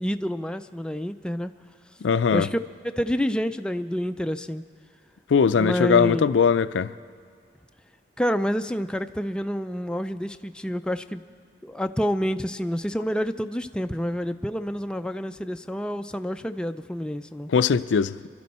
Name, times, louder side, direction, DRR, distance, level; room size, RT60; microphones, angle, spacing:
voice 1, 0.0-1.5 2.3-4.6 5.5-6.3 8.2-11.2 11.6-17.5, equal, 5° left, 0.3 m, -28 dB
voice 2, 2.0-2.5 5.3-6.9 17.5-18.4, left 6 dB, 90° left, 0.4 m, -20 dB
27.5 x 12.0 x 4.2 m
head